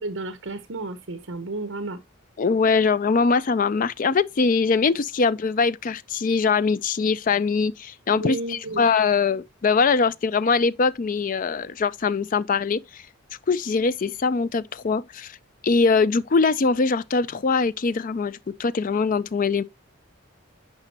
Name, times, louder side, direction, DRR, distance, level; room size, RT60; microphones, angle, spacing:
voice 1, 0.0-2.0 8.1-8.8, right 2 dB, 65° right, 0.9 m, -32 dB
voice 2, 2.4-13.0 13.5-15.4 15.6-19.6, left 4 dB, 40° left, 0.4 m, -22 dB
9.8 x 5.4 x 2.8 m
head